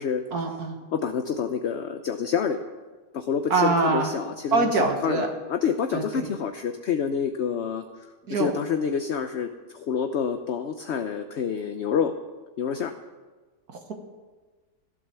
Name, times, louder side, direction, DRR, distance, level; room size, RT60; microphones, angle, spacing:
voice 1, 0.3-0.8 3.5-4.1 4.5-5.3 5.9-6.3 8.3-8.5, right 3 dB, 65° right, 3 dB, 2.0 m, -24 dB
voice 2, 0.9-2.6 3.1-12.1 12.6-12.9, left 7 dB, 55° left, 7 dB, 0.8 m, -28 dB
15.0 x 12.0 x 6.9 m, 1.3 s
omnidirectional pair, 1.8 m